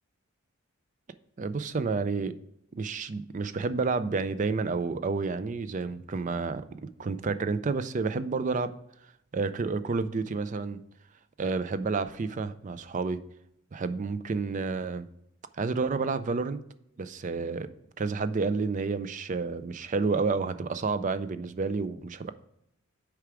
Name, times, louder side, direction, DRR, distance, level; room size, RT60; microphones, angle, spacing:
voice 1, 1.4-2.3 2.7-8.8 9.3-10.8 11.4-13.2 13.7-15.1 15.6-16.6 17.0-17.7 18.0-22.3, right 4 dB, 35° right, 12 dB, 0.4 m, -30 dB
6.5 x 4.8 x 4.8 m, 0.78 s
head